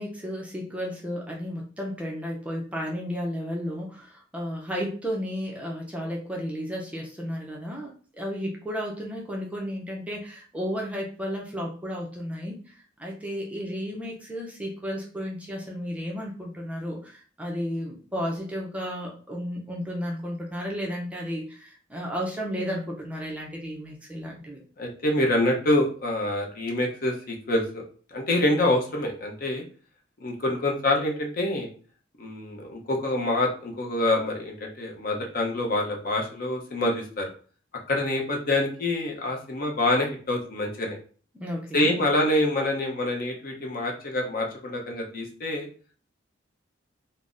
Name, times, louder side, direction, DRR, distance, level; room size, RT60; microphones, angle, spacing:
voice 1, 0.0-12.7 13.0-24.6 41.3-41.9, equal, 5° right, -2 dB, 0.5 m, -33 dB
voice 2, 24.8-27.8 28.1-29.6 30.2-31.7 32.2-37.3 37.9-41.0 41.7-45.7, left 1 dB, 50° left, 1 dB, 0.6 m, -26 dB
3.8 x 2.0 x 2.4 m, 0.41 s
head